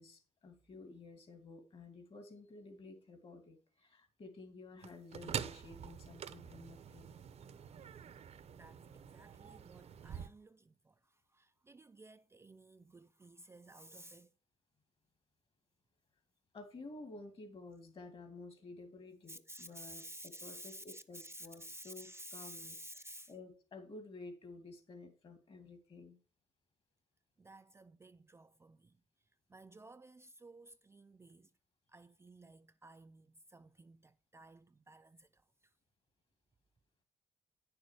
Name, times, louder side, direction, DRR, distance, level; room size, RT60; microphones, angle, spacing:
voice 1, 0.0-7.1 16.5-22.8 23.3-26.2, left 3 dB, 45° left, 2.3 m, -52 dB
sound 1, 4.8-10.3, right 7 dB, 55° right, 0.8 m, -46 dB
voice 2, 8.5-14.3 19.3-23.3 27.4-29.0 29.5-31.5 31.9-35.7, right 1 dB, 20° right, 0.4 m, -54 dB
9.5 x 6.8 x 4.7 m
cardioid pair, 105°, 13 cm